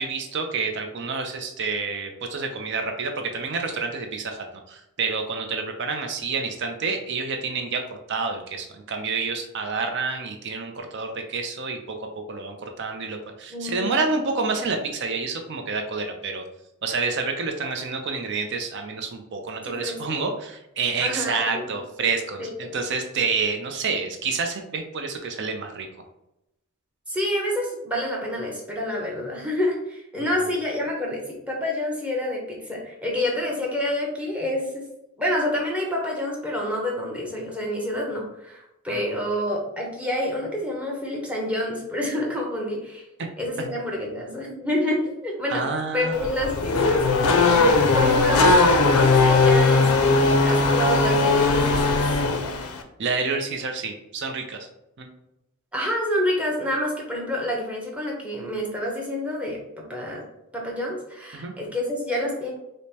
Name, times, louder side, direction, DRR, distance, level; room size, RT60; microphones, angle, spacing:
voice 1, 0.0-12.0 12.3-16.4 16.8-25.9 30.2-30.3 38.9-39.1 43.2-43.3 43.6-43.7 45.5-46.3 53.0-54.6 55.0-55.1 61.3-61.5, right 4 dB, 55° right, 4 dB, 0.6 m, -28 dB
voice 2, 13.5-14.0 19.6-20.2 21.0-21.7 22.4-22.7 27.1-34.9 35.2-43.0 43.4-45.6 45.9-47.0 47.3-52.0 55.7-60.2 60.5-62.5, left 1 dB, 5° right, -2 dB, 0.8 m, -28 dB
Race car auto racing / Accelerating revving vroom, 46.1-52.8, left 3 dB, 90° left, 0.5 m, -19 dB
5.0 x 2.1 x 2.8 m, 0.86 s
head